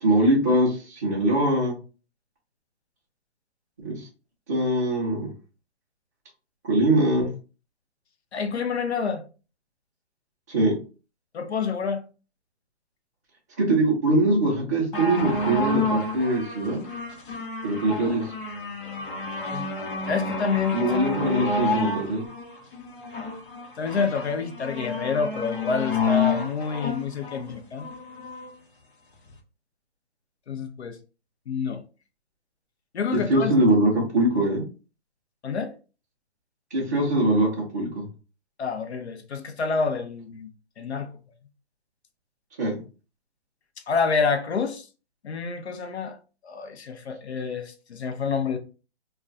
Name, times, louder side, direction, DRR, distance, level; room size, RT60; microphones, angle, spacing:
voice 1, 0.0-1.8 3.8-4.0 4.5-5.3 6.6-7.3 10.5-10.8 13.6-16.8 17.6-18.2 20.7-22.2 33.1-34.6 36.7-38.1 42.6-42.8, right 1 dB, 15° right, 0.4 m, -22 dB
voice 2, 8.3-9.2 11.3-12.0 19.5-19.7 20.1-21.0 23.8-27.9 30.5-31.0 31.5-31.8 32.9-33.7 35.4-35.7 38.6-40.5 40.8-41.1 43.9-44.9 45.2-46.2 46.4-48.6, left 5 dB, 80° left, 0.7 m, -28 dB
sound 1, 14.9-28.5 29.3-29.4, left 3 dB, 50° left, 0.9 m, -29 dB
2.3 x 2.3 x 3.8 m
hypercardioid pair, 155°, 32 cm